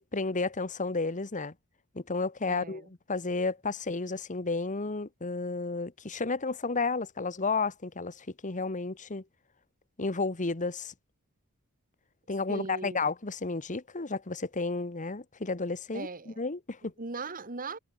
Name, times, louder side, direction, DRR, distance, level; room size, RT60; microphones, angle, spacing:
voice 1, 0.0-1.5 1.9-2.8 3.1-9.2 10.0-10.9 12.3-16.9, left 3 dB, 35° left, 1.3 m, -32 dB
voice 2, 2.5-2.9 12.5-13.0 15.9-16.4 16.8-17.8, right 3 dB, 40° right, 2.0 m, -39 dB
head